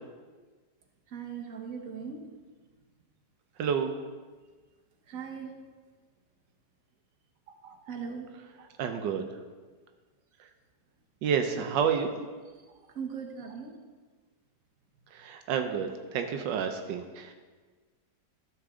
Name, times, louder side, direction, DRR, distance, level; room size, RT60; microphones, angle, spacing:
voice 1, 1.1-2.3 5.1-5.6 7.6-8.3 12.9-13.7, right 6 dB, 55° right, 2 dB, 1.5 m, -39 dB
voice 2, 3.6-3.9 8.8-9.3 10.4-10.5 11.2-12.1 15.1-17.3, right 7 dB, 85° right, 6 dB, 1.4 m, -29 dB
13.5 x 7.1 x 3.7 m, 1.4 s
omnidirectional pair, 1.9 m